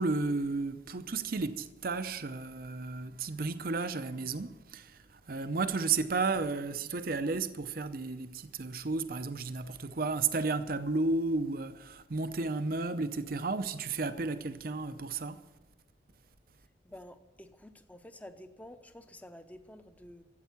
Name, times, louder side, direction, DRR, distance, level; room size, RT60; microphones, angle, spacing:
voice 1, 0.0-15.4, right 3 dB, 50° right, 0.6 m, -33 dB
voice 2, 16.8-20.2, left 1 dB, 10° left, 0.7 m, -50 dB
13.5 x 8.3 x 8.3 m
head